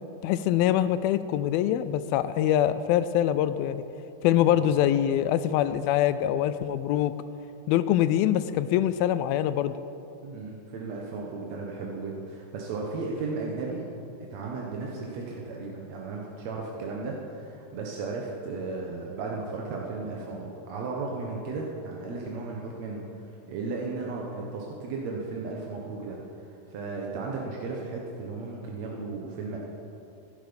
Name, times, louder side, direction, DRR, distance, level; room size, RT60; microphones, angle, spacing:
voice 1, 0.2-3.8 4.2-7.1 7.7-9.7, left 11 dB, 80° left, 13 dB, 2.3 m, -24 dB
voice 2, 10.2-13.8 14.3-23.1 23.5-26.2 26.7-29.6, right 3 dB, 65° right, -2 dB, 1.9 m, -35 dB
16.5 x 12.0 x 5.2 m, 2.7 s
omnidirectional pair, 4.4 m